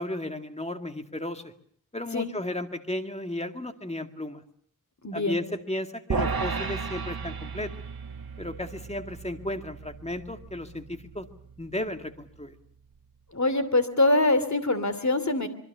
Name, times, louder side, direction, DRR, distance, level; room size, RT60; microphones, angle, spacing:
voice 1, 0.0-1.5 1.9-4.4 5.1-7.7 8.4-11.3 11.6-12.6, left 1 dB, 20° left, 6 dB, 2.1 m, -34 dB
voice 2, 5.0-5.4 13.3-15.5, left 2 dB, 50° left, 11 dB, 2.7 m, -24 dB
sound 1, 6.1-12.5, right 4 dB, 80° right, 1.6 m, -35 dB
26.0 x 22.5 x 6.8 m, 0.62 s
wide cardioid pair, 55°, 35 cm